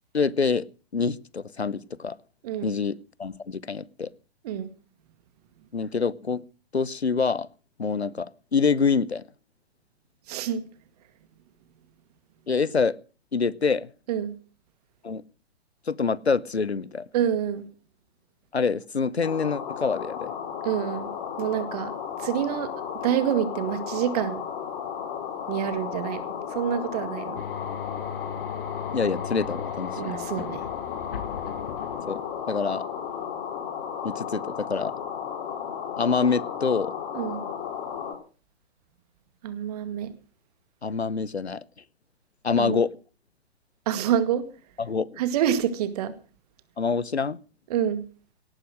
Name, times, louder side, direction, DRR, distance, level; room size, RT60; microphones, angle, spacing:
voice 1, 0.1-0.7 0.9-2.2 2.6-4.1 5.7-6.4 6.7-7.5 7.8-9.2 12.5-13.0 13.3-13.9 15.0-15.2 15.9-17.1 18.5-20.3 28.9-30.2 32.1-32.9 34.0-34.9 36.0-36.9 40.8-41.6 42.4-42.9 44.8-45.2 46.8-47.4, left 5 dB, 85° left, 0.8 m, -26 dB
voice 2, 2.4-2.8 4.4-4.7 10.3-10.6 14.1-14.4 17.1-17.7 20.6-21.9 22.2-24.4 25.5-26.2 26.5-27.4 30.0-30.6 37.1-37.4 39.4-40.1 42.6-42.8 43.9-44.4 45.2-46.1 47.7-48.1, right 9 dB, 40° right, 2.1 m, -27 dB
sound 1, 19.2-38.1, left 8 dB, 30° left, 4.9 m, -34 dB
sound 2, 27.4-32.7, left 7 dB, 60° left, 1.3 m, -39 dB
18.0 x 9.8 x 6.3 m
figure-of-eight pair, 120°, 31 cm